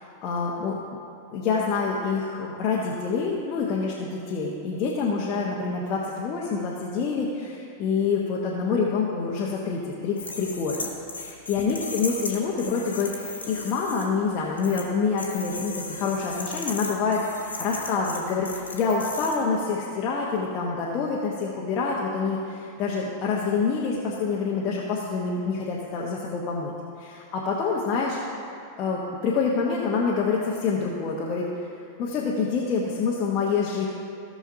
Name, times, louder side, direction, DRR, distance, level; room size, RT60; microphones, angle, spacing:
voice 1, 0.2-0.8 1.3-10.9 11.2-26.7 27.0-28.2 28.8-31.5 32.0-33.9, left 5 dB, 35° left, -4 dB, 1.2 m, -27 dB
sound 1, 10.2-14.0 14.6-14.8 15.2-19.3, left 3 dB, 75° left, 1.3 m, -36 dB
17.5 x 6.2 x 2.8 m, 2.7 s
figure-of-eight pair, 90°, 0 cm